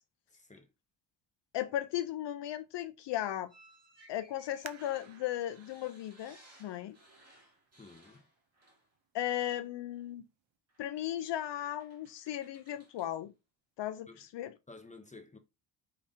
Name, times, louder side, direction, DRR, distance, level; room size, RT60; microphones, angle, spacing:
voice 1, 0.3-0.7 7.7-8.3 14.1-14.2 14.7-15.4, left 3 dB, 15° left, 0.8 m, -53 dB
voice 2, 1.5-3.5 4.1-7.0 9.1-10.2 10.8-13.3 13.8-14.5, left 12 dB, 65° left, 0.5 m, -36 dB
sound 1, 3.5-9.0 9.2-9.5 10.7-10.8 11.4-13.2, right 1 dB, 30° right, 2.1 m, -61 dB
sound 2, 4.6-8.0 8.6-8.7 9.3-9.7 10.1-10.2, right 12 dB, 75° right, 0.7 m, -54 dB
5.1 x 3.2 x 2.7 m
cardioid pair, 80°, 47 cm